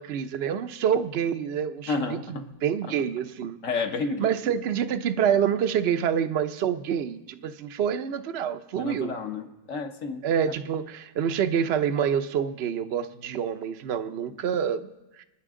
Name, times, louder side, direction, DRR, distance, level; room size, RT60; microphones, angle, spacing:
voice 1, 0.0-3.6 4.2-9.1 10.2-14.9 15.2-15.3, right 8 dB, 55° right, 11 dB, 0.7 m, -27 dB
voice 2, 1.9-2.4 3.6-4.3 8.8-10.2 14.3-14.4, left 4 dB, 55° left, 5 dB, 1.4 m, -31 dB
29.0 x 10.0 x 3.7 m, 1.0 s
omnidirectional pair, 1.7 m